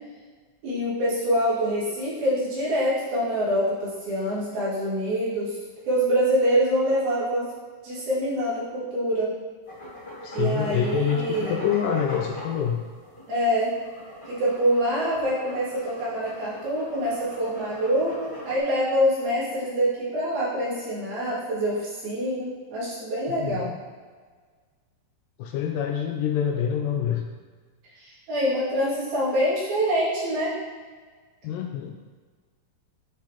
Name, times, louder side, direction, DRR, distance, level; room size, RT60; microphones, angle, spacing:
voice 1, 0.6-5.6 5.8-7.5 7.8-9.3 10.3-11.6 13.3-13.7 14.3-23.7 28.0-30.5, equal, 85° right, -9 dB, 4.0 m, -25 dB
sound 1, 9.7-18.6, left 1 dB, 25° left, 1.1 m, -40 dB
voice 2, 10.2-12.8 23.3-23.7 25.4-27.2 31.4-32.0, left 8 dB, 80° left, 3 dB, 2.0 m, -26 dB
10.0 x 3.9 x 2.9 m, 1.5 s
omnidirectional pair, 4.2 m